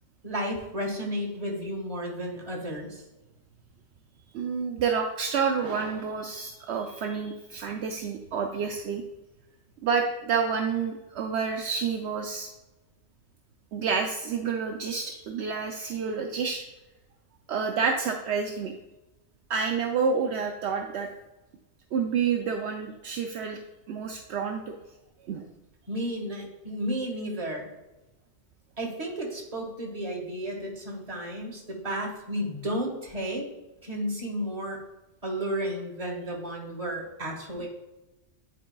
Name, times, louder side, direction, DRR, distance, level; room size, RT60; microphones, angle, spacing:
voice 1, 0.2-3.0 25.9-27.7 28.8-33.4 33.8-34.8 35.2-37.7, equal, 30° right, -2 dB, 1.6 m, -32 dB
voice 2, 4.3-9.0 9.8-12.5 13.7-16.6 17.5-18.7 19.5-21.1 21.9-23.6 23.9-24.7 25.3-25.5, right 6 dB, 70° right, 3 dB, 0.8 m, -29 dB
10.5 x 4.3 x 2.3 m, 1.0 s
omnidirectional pair, 1.2 m